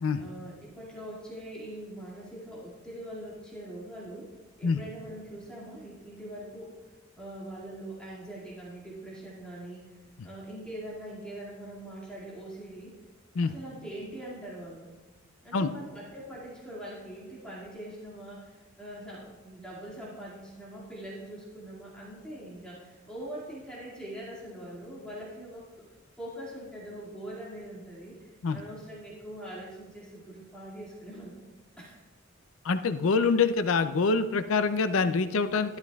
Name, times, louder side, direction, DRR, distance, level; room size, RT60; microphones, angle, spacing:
voice 1, 0.2-4.3 4.6-6.9 7.2-10.0 10.2-13.0 13.4-14.9 15.4-25.8 26.2-32.0, right 1 dB, 5° left, -8 dB, 2.1 m, -42 dB
voice 2, 32.6-35.8, left 4 dB, 80° left, 11 dB, 0.5 m, -25 dB
12.5 x 12.5 x 2.3 m, 1.2 s
head